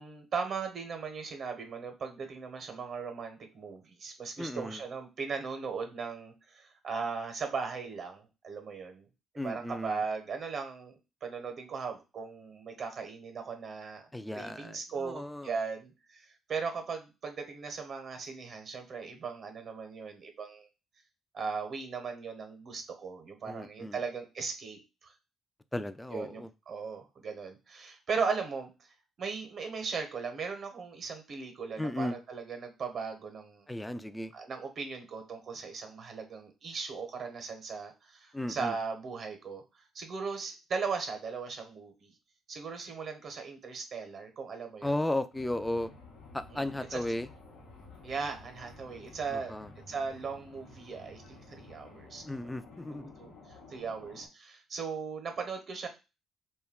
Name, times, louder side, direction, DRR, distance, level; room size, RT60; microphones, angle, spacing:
voice 1, 0.0-9.1 9.4-14.0 14.3-20.7 21.3-25.1 26.1-33.6 34.3-42.1 42.5-44.9 46.5-47.0 48.0-49.5 49.9-52.2 52.9-55.9, right 5 dB, 55° right, 5 dB, 0.7 m, -38 dB
voice 2, 4.4-4.8 9.4-10.0 14.1-15.5 23.4-24.0 25.7-26.5 31.8-32.2 33.7-34.3 38.3-38.8 44.8-45.9 46.3-47.3 49.3-49.7 52.2-53.1, left 1 dB, 10° left, 12 dB, 0.3 m, -35 dB
sound 1, 45.3-54.3, left 2 dB, 85° left, 0.9 m, -52 dB
2.2 x 2.2 x 3.5 m, 0.27 s
supercardioid pair, 65°, 0 cm